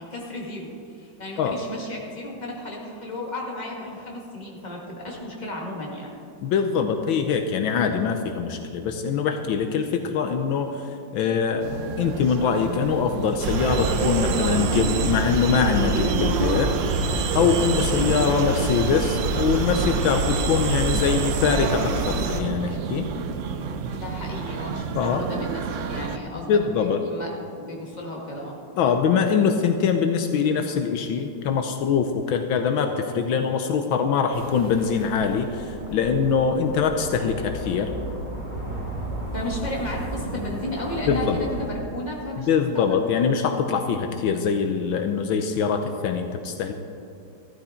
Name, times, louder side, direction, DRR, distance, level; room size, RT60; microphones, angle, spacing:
voice 1, 0.0-6.1 23.8-26.5 26.8-27.3 27.6-28.6 39.3-42.5 42.9-43.3, left 1 dB, 20° left, -2 dB, 2.2 m, -34 dB
voice 2, 6.4-11.7 12.0-16.8 17.3-23.0 24.9-25.2 26.4-27.0 28.8-37.9 41.1-41.4 42.4-46.7, left 6 dB, 80° left, 6 dB, 1.5 m, -23 dB
sound 1, 11.6-26.2, right 6 dB, 90° right, 0.6 m, -33 dB
sound 2, 13.4-22.4, right 4 dB, 70° right, 1.6 m, -25 dB
sound 3, 34.3-41.7, right 1 dB, 20° right, 2.3 m, -34 dB
14.5 x 13.0 x 4.4 m, 2.6 s
omnidirectional pair, 2.2 m